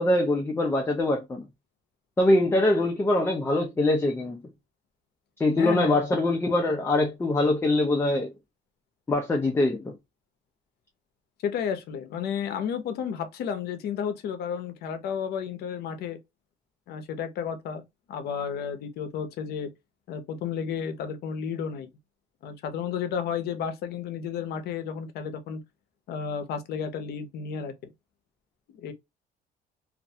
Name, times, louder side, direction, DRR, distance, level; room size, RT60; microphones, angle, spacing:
voice 1, 0.0-1.4 2.2-4.4 5.4-8.3 9.1-9.9, left 2 dB, 15° left, 0.4 m, -23 dB
voice 2, 5.6-6.0 11.4-16.2 16.9-19.7 20.1-21.9 22.4-25.6 26.1-27.7 28.7-28.9, left 7 dB, 70° left, 0.6 m, -32 dB
2.4 x 2.1 x 2.7 m
cardioid pair, 110°, 17 cm